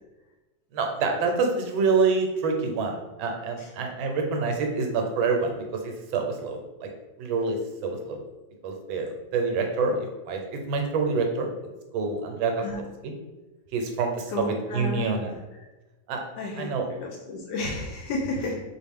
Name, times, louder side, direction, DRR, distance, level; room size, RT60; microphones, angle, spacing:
voice 1, 0.7-6.9 7.2-7.6 7.8-8.2 8.6-11.5 11.9-12.6 13.7-15.3 16.1-16.2 16.6-16.9, right 4 dB, 85° right, 3 dB, 1.4 m, -27 dB
voice 2, 14.3-15.4 16.4-18.6, left 2 dB, 70° left, 0 dB, 1.0 m, -32 dB
4.2 x 2.5 x 3.5 m, 1.1 s
omnidirectional pair, 2.1 m